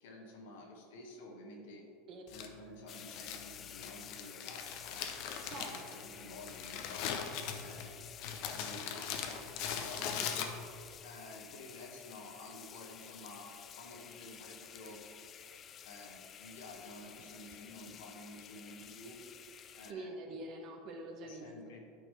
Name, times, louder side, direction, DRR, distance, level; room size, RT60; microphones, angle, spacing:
voice 1, 0.0-1.8 2.3-5.0 5.4-7.1 7.6-9.5 9.8-10.1 11.0-15.0 15.8-19.2 19.7-20.1 21.2-21.8, left 2 dB, 80° left, 0 dB, 1.4 m, -51 dB
Crumpling crinkling, 2.3-10.9, left 8 dB, 60° left, 0.7 m, -41 dB
sound 1, 2.9-19.9, left 8 dB, 35° left, 0.3 m, -52 dB
voice 2, 5.4-6.0 10.0-10.3 19.9-21.5, right 2 dB, 50° right, 2 dB, 1.2 m, -46 dB
9.5 x 5.1 x 3.3 m, 2.5 s
supercardioid pair, 110°, 0 cm